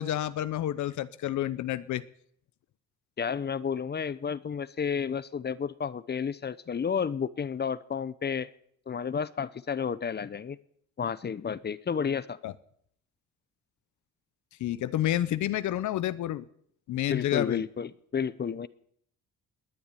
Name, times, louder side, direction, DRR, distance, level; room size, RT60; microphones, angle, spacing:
voice 1, 0.0-2.0 12.4-12.5 14.6-16.4 16.9-17.7, left 13 dB, 75° left, 16 dB, 0.8 m, -29 dB
voice 2, 3.2-8.5 8.9-10.6 11.0-12.4 17.1-18.7, left 6 dB, 35° left, 17 dB, 0.8 m, -31 dB
20.5 x 7.1 x 9.8 m, 0.66 s
cardioid pair, 90°, 30 cm